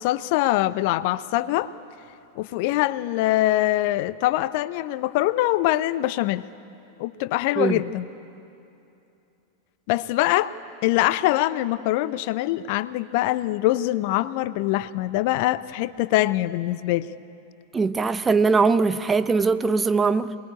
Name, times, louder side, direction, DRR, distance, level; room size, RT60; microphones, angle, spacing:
voice 1, 0.0-1.7 2.4-6.4 7.0-8.1 9.9-10.5 10.8-17.1, left 16 dB, 45° left, 0.6 m, -23 dB
voice 2, 17.7-20.4, right 4 dB, 15° right, 0.8 m, -21 dB
27.0 x 20.5 x 9.6 m
figure-of-eight pair, 90°, 0 cm